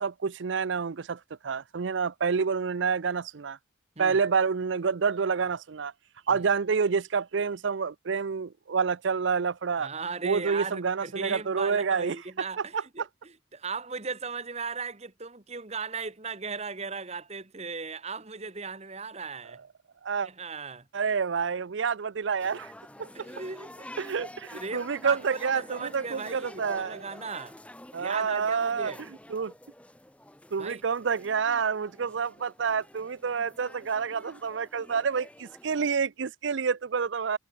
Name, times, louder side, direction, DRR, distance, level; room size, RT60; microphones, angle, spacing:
voice 1, 0.0-3.6 4.0-5.9 6.3-9.9 10.2-12.2 12.7-12.8 20.0-20.3 20.9-22.7 23.0-23.3 24.0-27.0 27.9-28.9 29.3-29.5 30.5-37.4, right 5 dB, 70° right, 0.5 m, -28 dB
voice 2, 9.8-19.6 20.2-20.9 23.1-24.0 24.5-27.6 27.9-29.0 30.6-30.8, right 4 dB, 35° right, 1.5 m, -37 dB
sound 1, 22.4-35.9, left 1 dB, 5° left, 1.5 m, -48 dB
head